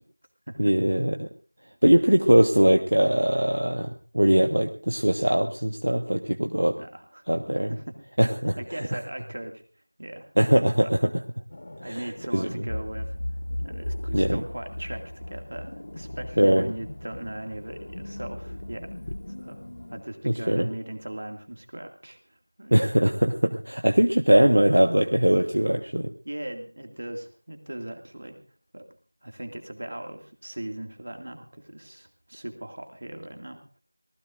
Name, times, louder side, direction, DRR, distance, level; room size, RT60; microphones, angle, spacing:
voice 1, 0.6-1.3 1.8-6.8 7.3-7.7 8.2-8.5 10.4-11.1 11.9-12.0 12.3-12.5 14.1-14.4 16.4-16.6 20.2-20.7 22.7-26.1, equal, 60° right, 5 dB, 1.3 m, -21 dB
voice 2, 6.7-7.2 7.7-7.9 8.6-9.6 10.0-10.3 11.8-13.2 13.6-18.9 19.3-19.6 19.9-22.8 26.2-28.4 28.7-28.9 29.2-33.8, right 1 dB, 35° right, 4 dB, 2.3 m, -38 dB
sound 1, 11.5-20.0, left 1 dB, 30° left, 0.7 m, -36 dB
25.0 x 19.0 x 2.6 m, 0.39 s
figure-of-eight pair, 175°, 0 cm